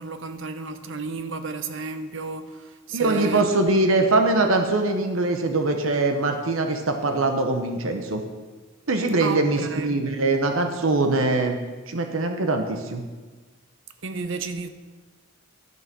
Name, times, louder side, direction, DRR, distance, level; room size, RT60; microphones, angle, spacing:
voice 1, 0.0-3.5 9.2-10.1 14.0-14.7, right 4 dB, 65° right, 0.7 m, -32 dB
voice 2, 2.9-8.2 8.9-11.6 11.9-13.0, right 2 dB, 80° right, 1.0 m, -22 dB
12.0 x 6.3 x 6.0 m
head